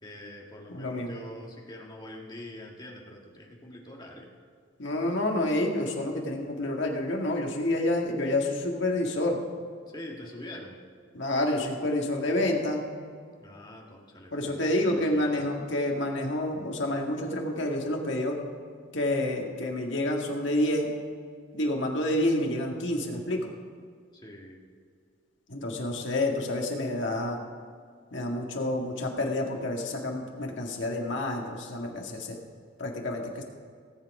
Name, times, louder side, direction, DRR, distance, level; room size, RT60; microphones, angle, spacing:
voice 1, 0.0-4.3 9.9-10.8 13.4-15.5 24.1-24.6, left 1 dB, 20° left, -1 dB, 1.6 m, -44 dB
voice 2, 0.7-1.1 4.8-9.4 11.1-12.8 14.3-18.4 18.9-20.9 21.5-23.5 25.5-27.4 28.1-32.4 32.8-33.4, left 1 dB, 60° left, 0 dB, 1.9 m, -28 dB
18.0 x 7.7 x 4.9 m, 2.1 s
head